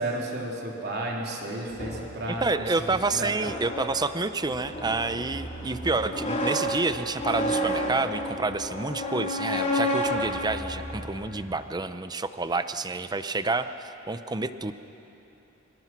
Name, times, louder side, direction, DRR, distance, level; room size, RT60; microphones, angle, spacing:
voice 1, 0.0-3.5, right 1 dB, 55° right, -1 dB, 3.5 m, -33 dB
sound 1, 1.7-11.7, equal, 35° left, 3.1 m, -31 dB
voice 2, 2.3-14.7, right 3 dB, 20° right, 11 dB, 0.7 m, -29 dB
25.0 x 24.5 x 6.0 m, 3.0 s
head